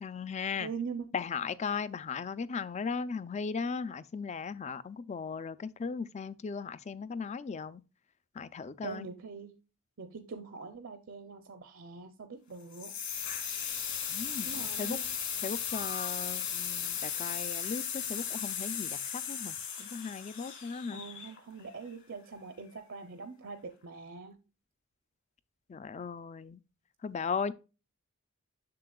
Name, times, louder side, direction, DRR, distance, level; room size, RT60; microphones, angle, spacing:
voice 1, 0.0-0.7 1.1-7.8 8.4-9.1 14.1-15.0 15.4-21.0 25.7-26.6 27.0-27.5, left 5 dB, 30° left, 0.3 m, -37 dB
voice 2, 0.6-1.1 8.8-9.5 10.0-12.9 14.4-15.1 20.9-24.4, right 5 dB, 60° right, 0.6 m, -43 dB
sound 1, 12.7-21.6, left 8 dB, 55° left, 2.3 m, -36 dB
7.6 x 6.6 x 2.3 m
head